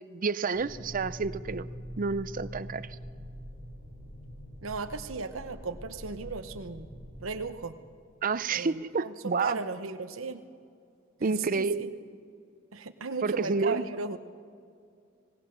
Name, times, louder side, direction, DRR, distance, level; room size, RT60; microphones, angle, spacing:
voice 1, 0.0-1.7 2.0-2.9 8.2-9.6 11.2-12.0 13.2-13.8, right 4 dB, 45° right, 16 dB, 0.6 m, -29 dB
sound 1, 0.5-7.3, equal, 45° left, 5.4 m, -44 dB
voice 2, 4.6-6.9 7.2-7.7 8.5-10.4 11.2-11.9 12.7-14.2, right 4 dB, 90° right, 9 dB, 1.0 m, -36 dB
24.5 x 19.0 x 6.9 m, 2.4 s
head